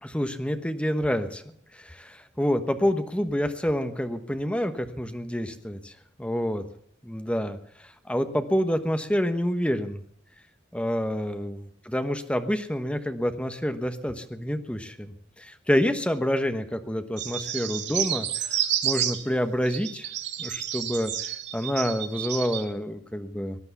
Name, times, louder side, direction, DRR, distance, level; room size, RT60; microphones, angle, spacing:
voice 1, 0.0-5.9 6.2-6.6 7.0-10.0 10.7-20.1 20.4-23.6, equal, 5° left, 8 dB, 1.1 m, -28 dB
sound 1, 17.2-19.2 19.7-22.6, right 10 dB, 65° right, 1.4 m, -30 dB
18.5 x 10.5 x 7.0 m, 0.66 s
head